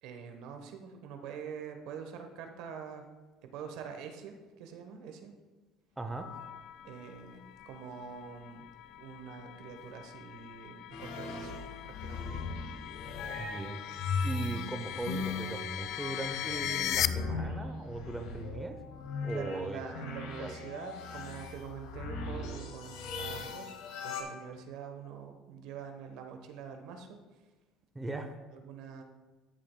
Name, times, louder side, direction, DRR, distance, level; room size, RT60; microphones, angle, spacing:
voice 1, 0.0-3.0 3.5-5.3 6.8-8.7 9.0-11.5 11.8-12.4 14.5-14.6 19.3-27.2 28.0-28.1 28.5-29.0, right 6 dB, 70° right, 5 dB, 1.0 m, -45 dB
voice 2, 6.0-6.3 13.4-13.8 14.2-18.8 19.2-19.8 20.4-20.5 27.9-28.3, right 2 dB, 10° right, 5 dB, 0.7 m, -39 dB
sound 1, 6.1-17.1, left 12 dB, 55° left, 0.3 m, -40 dB
sound 2, 10.9-24.2, left 4 dB, 75° left, 1.2 m, -39 dB
13.5 x 7.5 x 2.2 m, 1.2 s
cardioid pair, 120°, 0 cm